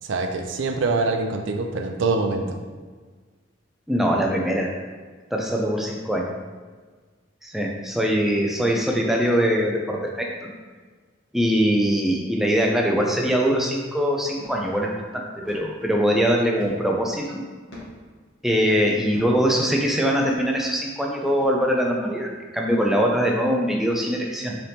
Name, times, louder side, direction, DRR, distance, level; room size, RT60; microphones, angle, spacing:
voice 1, 0.0-2.6, right 3 dB, 70° right, 4 dB, 0.4 m, -24 dB
voice 2, 3.9-4.7 5.3-6.3 7.4-10.5 11.3-17.4 18.4-24.6, equal, ahead, -1 dB, 0.3 m, -22 dB
sound 1, 14.4-14.6 15.4-15.7 16.6-16.9 17.7-18.0 19.1-19.4 20.2-20.5 21.4-21.5, left 1 dB, 75° left, 1.1 m, -41 dB
4.1 x 3.3 x 2.8 m, 1.5 s
head